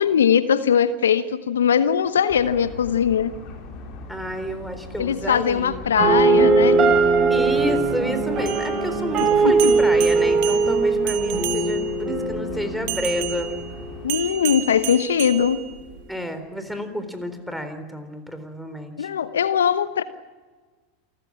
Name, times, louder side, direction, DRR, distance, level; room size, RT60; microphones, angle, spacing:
voice 1, 0.0-3.3 5.0-6.9 9.4-9.7 14.0-15.6 19.0-20.0, left 8 dB, 80° left, 13 dB, 1.0 m, -20 dB
sound 1, 2.3-14.1, left 4 dB, 50° left, 5.3 m, -40 dB
voice 2, 4.1-5.9 7.3-13.5 16.1-19.1, equal, ahead, 8 dB, 3.8 m, -30 dB
sound 2, 6.0-14.0, right 3 dB, 40° right, 7.5 m, -20 dB
sound 3, 8.4-12.0 12.9-16.1, right 13 dB, 60° right, 1.6 m, -32 dB
28.0 x 14.5 x 8.7 m, 1.4 s
hypercardioid pair, 90°, 0 cm